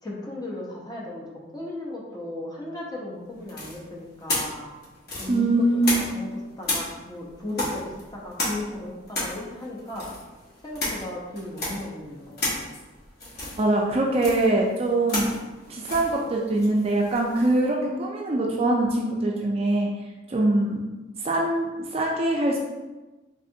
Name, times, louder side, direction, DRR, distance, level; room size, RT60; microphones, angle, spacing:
voice 1, 0.0-4.7 5.2-5.5 6.1-10.1 10.6-12.7, left 1 dB, 20° left, -4 dB, 0.7 m, -36 dB
sound 1, 3.5-6.3 6.6-17.6, left 2 dB, 55° left, 1.2 m, -32 dB
voice 2, 5.3-6.0 13.6-15.3 15.7-19.9 20.3-20.8 21.2-22.6, right 2 dB, 30° right, -1 dB, 0.4 m, -23 dB
3.6 x 3.2 x 2.6 m, 1.1 s
head